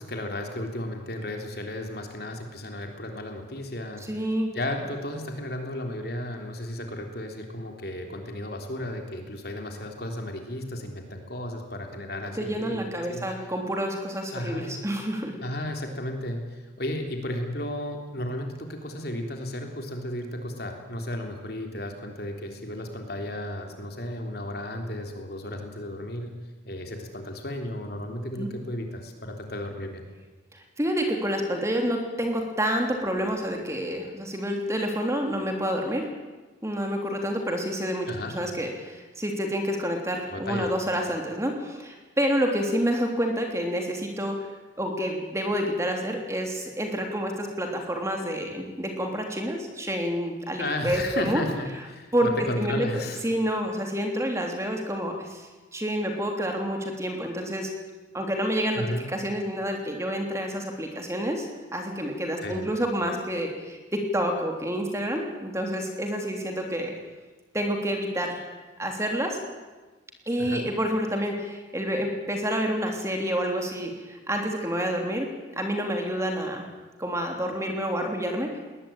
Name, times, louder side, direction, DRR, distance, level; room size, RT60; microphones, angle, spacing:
voice 1, 0.0-13.2 14.3-14.8 15.4-26.3 26.7-30.0 38.1-38.4 40.3-40.8 50.6-53.2 58.7-59.1 62.4-62.7 70.4-70.7, left 1 dB, 55° left, 3 dB, 3.6 m, -34 dB
voice 2, 4.0-4.5 12.4-15.3 28.4-28.5 30.8-36.1 36.6-44.5 44.8-51.4 52.1-52.3 52.6-57.7 58.1-66.9 67.5-68.4 68.8-69.4 70.3-75.3 75.6-76.7 77.0-78.6, equal, 15° right, 3 dB, 3.2 m, -28 dB
21.0 x 19.0 x 9.1 m, 1.3 s
head